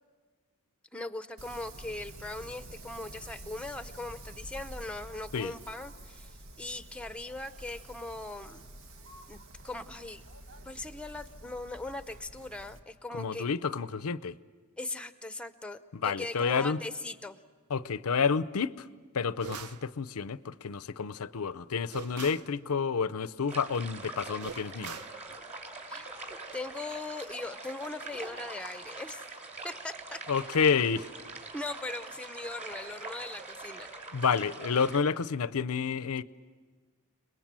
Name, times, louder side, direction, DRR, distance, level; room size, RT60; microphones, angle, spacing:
voice 1, 0.9-8.7 9.3-10.2 10.6-13.5 14.8-17.4 25.9-26.1 26.5-29.2 29.6-30.2 31.5-33.9, left 2 dB, 5° left, 0.7 m, -40 dB
Wind, 1.4-12.8, right 1 dB, 70° right, 1.7 m, -48 dB
voice 2, 13.1-14.4 15.9-16.8 17.7-18.9 19.1-25.0 30.3-31.1 34.1-36.2, left 5 dB, 80° left, 0.6 m, -29 dB
sound 1, 19.4-19.9 21.9-22.5 24.4-25.2, right 6 dB, 90° right, 0.7 m, -42 dB
sound 2, 23.5-35.0, right 3 dB, 30° right, 3.9 m, -44 dB
29.5 x 21.0 x 7.5 m
head